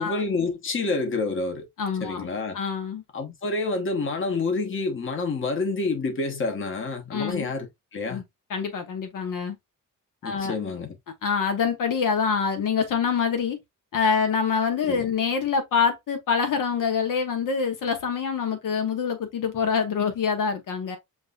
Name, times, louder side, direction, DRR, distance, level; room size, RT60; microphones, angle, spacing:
voice 1, 0.0-1.7 2.0-2.6 3.1-8.2 10.2-10.9 14.9-15.1, left 3 dB, 40° left, 1.2 m, -28 dB
voice 2, 1.8-2.3 2.5-3.0 7.1-7.5 8.1-8.2 8.5-9.6 10.2-10.5 11.2-13.6 13.9-21.0, left 6 dB, 75° left, 1.1 m, -25 dB
7.7 x 2.7 x 2.4 m
wide cardioid pair, 160°, 33 cm